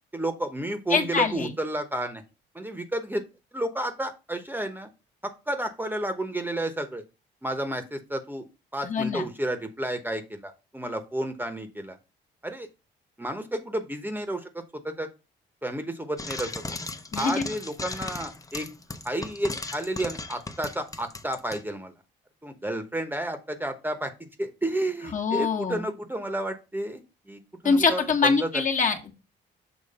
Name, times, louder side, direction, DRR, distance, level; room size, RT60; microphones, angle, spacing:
voice 1, 0.1-2.2 2.5-3.2 3.5-4.9 5.2-7.0 7.4-8.4 8.7-12.0 12.4-12.7 13.2-15.1 15.6-16.6 17.1-18.7 19.0-21.9 22.4-27.0 27.3-28.6, right 1 dB, 10° right, 7 dB, 1.0 m, -31 dB
voice 2, 0.9-1.5 8.8-9.3 17.1-17.4 25.1-25.9 27.6-29.2, left 5 dB, 40° left, 3 dB, 1.3 m, -24 dB
Frying (food), 16.2-21.6, left 3 dB, 15° left, 0.7 m, -36 dB
6.8 x 3.1 x 5.4 m, 0.28 s
cardioid pair, 90°, 20 cm